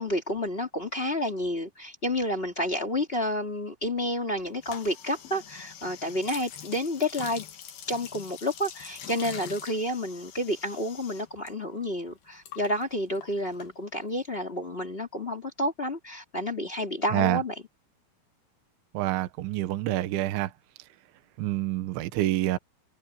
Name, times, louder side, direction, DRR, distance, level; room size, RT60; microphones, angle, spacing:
voice 1, 0.0-7.4 7.9-17.5, left 1 dB, 20° left, 1.7 m, -30 dB
sound 1, 4.6-11.5 11.8-14.2, left 9 dB, 55° left, 3.6 m, -45 dB
voice 2, 18.9-20.5 21.4-22.6, right 15 dB, 75° right, 3.5 m, -27 dB
omnidirectional pair, 5.5 m